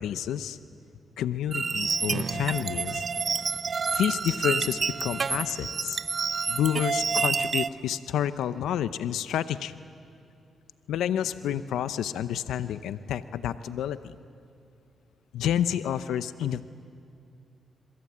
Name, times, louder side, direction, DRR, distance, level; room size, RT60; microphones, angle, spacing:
voice 1, 0.0-0.6 1.2-3.0 3.9-6.0 6.5-9.7 10.9-14.2 15.3-16.6, left 10 dB, 85° left, 13 dB, 0.7 m, -29 dB
sound 1, 1.5-7.7, right 5 dB, 50° right, 0.6 m, -28 dB
26.5 x 23.0 x 8.6 m, 2.4 s
supercardioid pair, 60°, 0 cm